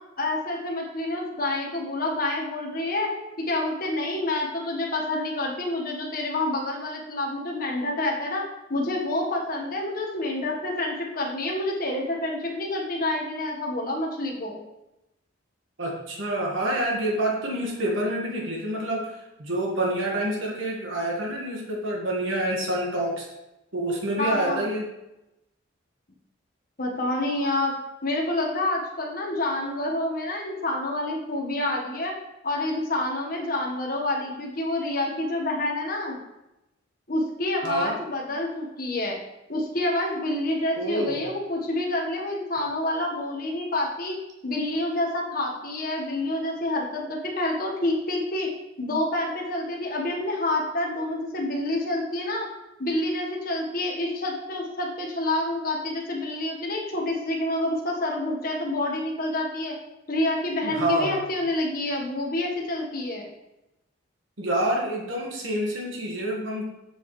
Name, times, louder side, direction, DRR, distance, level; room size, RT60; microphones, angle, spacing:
voice 1, 0.2-3.1 3.4-8.4 8.7-14.6 24.2-24.6 26.8-27.8 28.0-32.1 32.4-36.2 37.1-39.2 39.5-44.1 44.4-48.5 48.8-52.5 52.8-59.7 60.1-63.3, left 1 dB, 45° left, -1 dB, 1.4 m, -28 dB
voice 2, 15.8-23.3 23.7-24.8 37.6-37.9 40.8-41.2 60.6-61.2 64.4-66.6, right 1 dB, 70° right, -2 dB, 1.6 m, -27 dB
8.0 x 6.4 x 3.2 m, 0.92 s
head